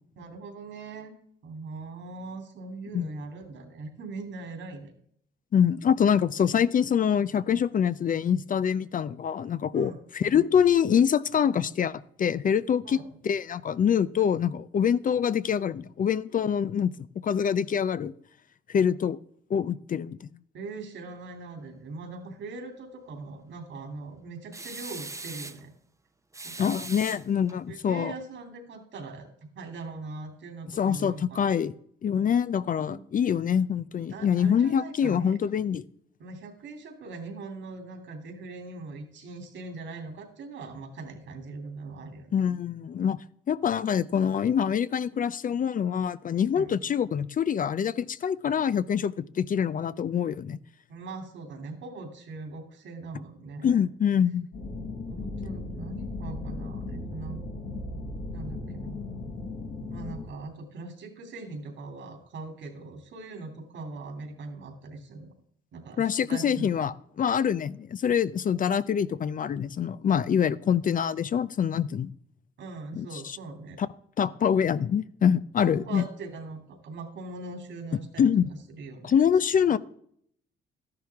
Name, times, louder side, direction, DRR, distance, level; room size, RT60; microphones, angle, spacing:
voice 1, 0.2-1.1 1.4-4.9 9.7-10.0 12.8-13.1 20.5-25.7 26.4-26.7 27.7-29.3 29.5-31.4 32.9-33.0 34.1-35.4 36.2-42.3 46.5-46.7 50.9-53.8 55.1-57.4 57.9-58.0 58.3-59.0 59.9-65.3 65.7-66.9 72.6-73.8 75.6-79.1, right 3 dB, 70° right, 5 dB, 2.9 m, -41 dB
voice 2, 5.5-16.9 17.2-18.1 18.7-19.2 19.5-20.2 26.6-28.1 30.8-31.7 32.0-35.8 42.3-43.2 43.5-50.6 53.6-54.5 66.0-72.1 72.9-73.4 73.8-73.9 74.2-76.0 78.2-78.5 79.0-79.8, left 8 dB, 45° left, 16 dB, 0.5 m, -25 dB
sound 1, 24.5-25.6 26.3-27.6, right 3 dB, 15° right, 0.7 m, -40 dB
sound 2, 54.5-60.2, left 2 dB, 90° left, 5.5 m, -36 dB
13.0 x 10.5 x 3.6 m, 0.66 s
cardioid pair, 90°, 20 cm